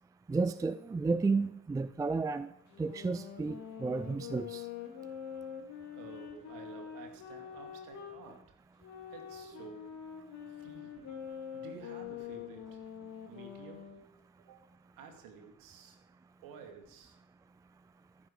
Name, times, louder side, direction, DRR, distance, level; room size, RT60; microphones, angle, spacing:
voice 1, 0.3-2.5 2.8-4.7, right 4 dB, 10° right, 14 dB, 0.5 m, -32 dB
sound 1, 2.7-8.2 8.8-14.0, left 8 dB, 45° left, 2.8 m, -45 dB
voice 2, 5.9-8.5 9.1-10.0 10.5-11.1 11.5-13.9 14.4-14.7 15.0-16.0 16.4-17.2, right 6 dB, 55° right, 4 dB, 2.5 m, -52 dB
13.5 x 10.5 x 4.9 m, 0.73 s
figure-of-eight pair, 60°, 40 cm